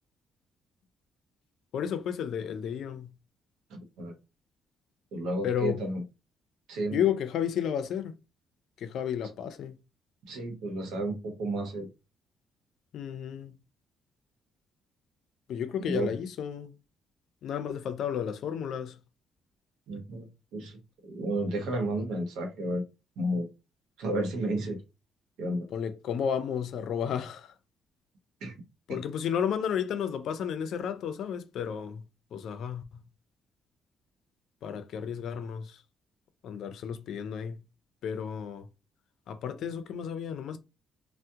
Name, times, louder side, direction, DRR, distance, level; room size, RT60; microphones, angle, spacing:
voice 1, 1.7-3.1 5.4-5.9 6.9-8.2 8.8-9.8 12.9-13.6 15.5-16.7 17.4-19.0 25.7-27.5 28.9-32.0 32.3-33.0 34.6-35.8 36.4-37.6 38.0-38.7 39.3-40.6, left 8 dB, 75° left, 0.5 m, -32 dB
voice 2, 3.7-4.2 5.1-6.0 6.7-7.0 10.3-11.9 15.8-16.1 19.9-22.8 23.2-23.5 24.0-24.8 25.4-25.7 28.4-28.5 28.9-29.0, right 1 dB, 85° right, 0.9 m, -32 dB
2.7 x 2.1 x 3.5 m
cardioid pair, 90°, 0 cm